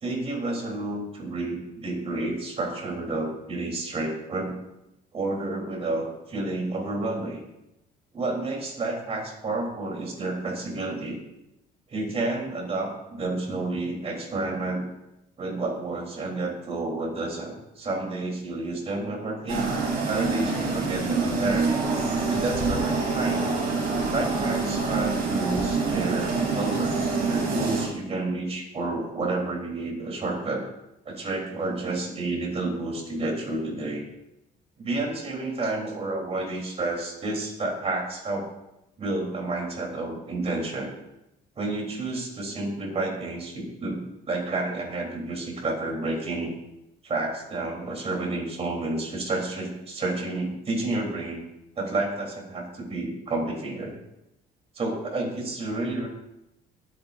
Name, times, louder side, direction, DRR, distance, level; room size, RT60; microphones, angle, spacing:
voice 1, 0.0-4.6 5.1-7.4 8.1-11.2 11.9-14.8 15.4-19.7 20.1-21.8 22.3-23.5 24.1-30.7 31.1-34.1 34.8-38.5 39.0-40.9 41.6-44.0 44.3-46.5 47.0-51.4 51.8-54.0 54.7-56.1, right 2 dB, 35° right, 1 dB, 3.8 m, -30 dB
sound 1, 19.5-27.8, right 4 dB, 60° right, 3.7 m, -26 dB
22.0 x 8.9 x 2.7 m, 0.89 s
cardioid pair, 110°, 17 cm